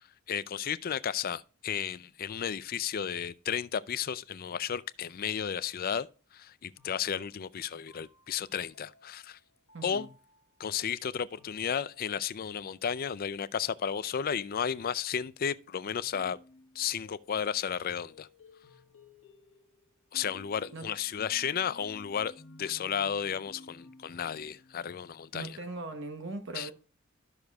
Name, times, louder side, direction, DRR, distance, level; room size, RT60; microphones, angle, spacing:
voice 1, 0.3-6.1 6.3-9.4 9.8-10.1 10.6-16.4 16.8-18.3 20.1-22.3 22.6-25.6 26.5-26.7, left 8 dB, 45° left, 0.4 m, -33 dB
sound 1, 7.9-10.7 11.4-12.8 13.9-15.0 15.9-17.8 18.1-25.1, left 1 dB, 75° left, 1.4 m, -57 dB
voice 2, 9.7-10.1 20.7-20.9 25.3-26.7, right 2 dB, 60° right, 1.0 m, -40 dB
12.5 x 6.5 x 2.3 m
head